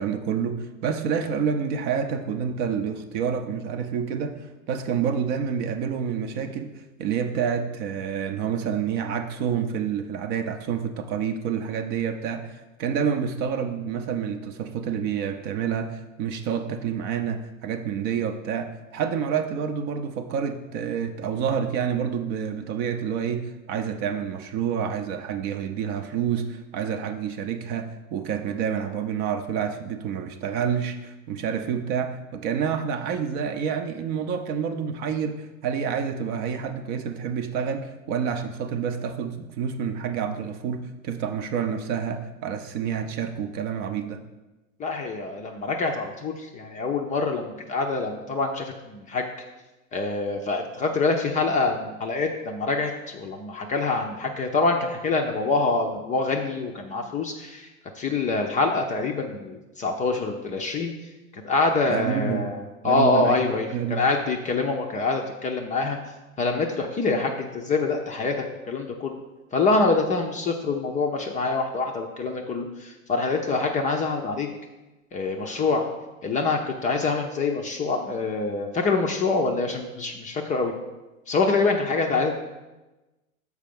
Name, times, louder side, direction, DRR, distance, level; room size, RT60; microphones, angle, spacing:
voice 1, 0.0-44.2 61.9-62.5 62.8-63.4 63.7-64.0, right 7 dB, 40° right, 7 dB, 0.6 m, -28 dB
voice 2, 44.8-49.3 49.9-57.7 57.9-60.9 61.4-66.0 66.4-69.2 69.5-74.5 75.1-75.9 76.2-80.7 81.3-82.4, left 3 dB, 20° left, 3 dB, 0.5 m, -25 dB
6.5 x 4.7 x 5.2 m, 1.1 s
figure-of-eight pair, 95°, 41 cm